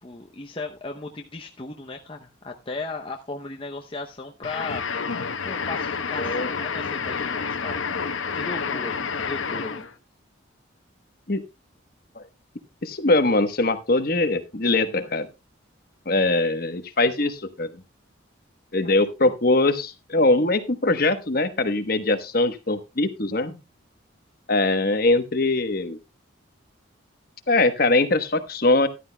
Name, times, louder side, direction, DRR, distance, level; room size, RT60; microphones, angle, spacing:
voice 1, 0.0-5.1 5.4-7.9 8.3-9.9, left 3 dB, 25° left, 2 dB, 0.7 m, -36 dB
sound 1, 4.4-9.9, left 5 dB, 85° left, 1.0 m, -29 dB
voice 2, 6.2-6.5 11.3-11.4 12.2-12.3 12.8-15.3 16.1-17.7 18.7-23.6 24.5-26.0 27.5-28.9, left 2 dB, 45° left, 9 dB, 1.1 m, -22 dB
14.0 x 11.5 x 2.3 m, 0.24 s
head